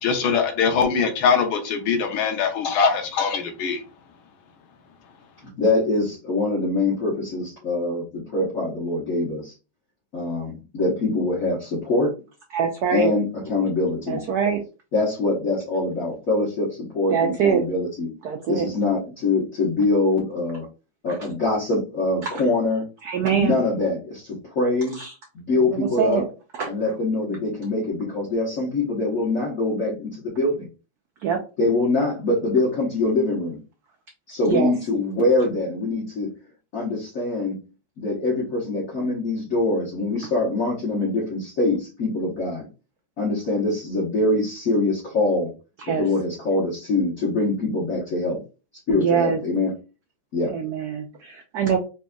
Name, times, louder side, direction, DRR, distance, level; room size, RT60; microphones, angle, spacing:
voice 1, 0.0-3.8, left 6 dB, 75° left, 1.6 m, -22 dB
voice 2, 5.4-9.5 10.1-12.1 12.9-14.2 14.9-18.1 18.5-20.7 21.0-22.9 23.3-25.0 25.3-26.2 26.7-30.7 31.6-33.6 34.3-36.3 36.7-37.6 38.0-42.7 43.2-45.5 45.9-48.4 48.9-49.7 50.3-50.5, left 2 dB, 45° left, 1.4 m, -24 dB
voice 3, 12.5-13.1 14.1-14.6 17.1-17.6 18.2-18.7 22.2-22.4 23.0-23.6 24.9-25.1 25.7-26.2 26.5-26.7 31.2-31.4 34.4-34.7 45.8-46.0 48.9-49.4 50.5-51.8, right 7 dB, 80° right, 0.8 m, -23 dB
4.0 x 3.4 x 2.3 m
omnidirectional pair, 2.3 m